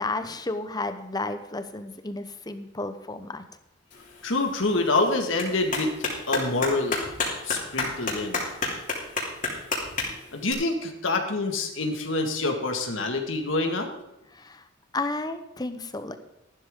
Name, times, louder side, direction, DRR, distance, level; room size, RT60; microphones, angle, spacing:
voice 1, 0.0-3.4 14.3-14.7 14.9-16.2, left 2 dB, 20° left, 9 dB, 0.9 m, -32 dB
Clapping, 3.9-10.5, left 3 dB, 45° left, 3.2 m, -32 dB
voice 2, 4.2-5.9 6.3-7.0 7.4-8.4 10.3-13.9, left 2 dB, 75° left, 4 dB, 1.9 m, -26 dB
14.0 x 12.0 x 3.8 m, 0.90 s
head